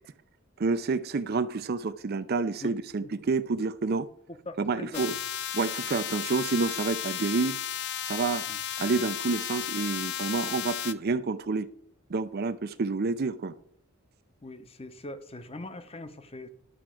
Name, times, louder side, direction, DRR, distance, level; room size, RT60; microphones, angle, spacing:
voice 1, 0.6-4.1 4.6-5.2 5.5-7.6 8.1-8.5 8.8-11.7 12.1-13.5, right 4 dB, 45° right, 0.5 m, -29 dB
voice 2, 4.5-5.0 8.5-8.6 14.4-16.5, left 2 dB, 25° left, 0.8 m, -41 dB
sound 1, 4.9-10.9, left 11 dB, 55° left, 0.5 m, -34 dB
11.5 x 4.6 x 7.5 m
head